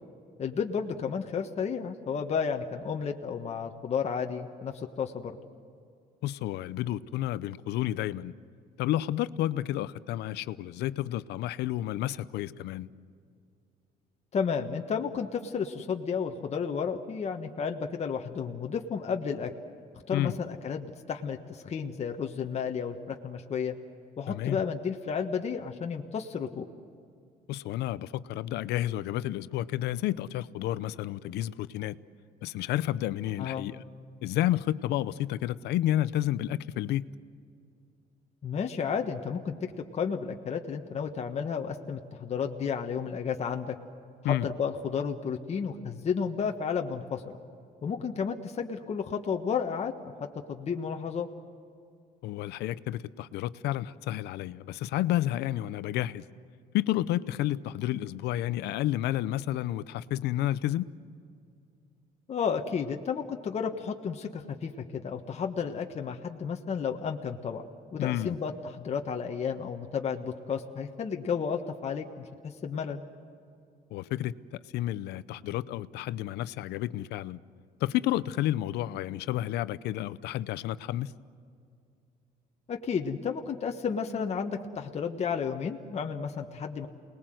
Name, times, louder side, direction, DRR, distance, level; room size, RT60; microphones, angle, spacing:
voice 1, 0.4-5.4 14.3-19.5 20.1-23.7 24.2-26.6 33.4-33.7 38.4-43.7 44.3-47.2 47.8-50.1 50.5-51.3 62.3-67.6 67.9-73.0 82.7-86.9, left 6 dB, 40° left, 1.4 m, -32 dB
voice 2, 6.2-8.3 8.8-12.9 20.1-20.4 24.3-24.6 27.5-32.0 32.4-33.8 34.2-37.1 44.2-44.5 52.2-56.2 56.7-60.9 68.0-68.4 73.9-74.3 74.7-77.4 77.8-81.1, left 14 dB, 80° left, 0.7 m, -30 dB
29.0 x 20.5 x 7.8 m
cardioid pair, 110°, 17 cm